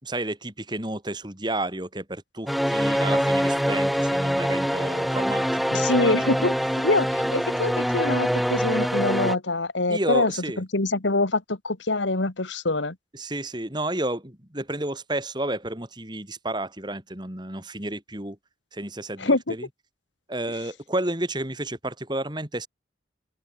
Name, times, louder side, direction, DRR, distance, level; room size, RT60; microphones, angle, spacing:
voice 1, 0.0-6.5 9.9-10.6 13.1-18.4 18.7-19.7 20.3-22.7, right 1 dB, 25° right, 3.8 m, -31 dB
sound 1, 2.5-9.4, equal, ahead, 4.1 m, -24 dB
voice 2, 5.7-6.5 6.8-10.3 10.6-13.0 19.2-19.6, left 2 dB, 85° left, 2.0 m, -24 dB
head